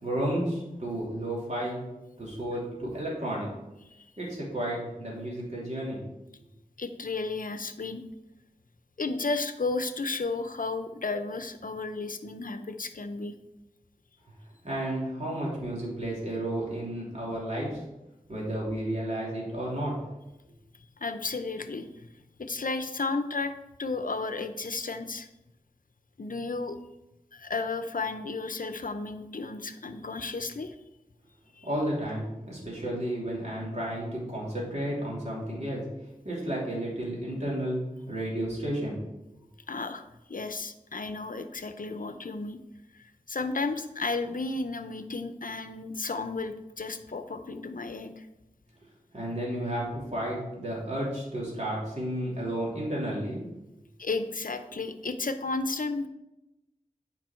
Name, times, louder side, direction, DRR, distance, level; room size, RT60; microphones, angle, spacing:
voice 1, 0.0-1.8 2.2-3.5 4.2-6.0 14.6-17.8 18.3-19.9 31.6-35.8 36.2-39.0 49.1-53.4, right 1 dB, 50° right, -5 dB, 3.1 m, -32 dB
voice 2, 6.8-8.0 9.0-13.3 21.0-21.9 22.4-23.5 23.8-25.3 26.2-26.8 27.3-30.7 31.6-31.7 39.7-42.6 43.0-48.3 54.0-56.1, left 3 dB, 70° left, 9 dB, 0.7 m, -33 dB
9.2 x 5.3 x 4.4 m, 0.94 s
wide cardioid pair, 55°, 15 cm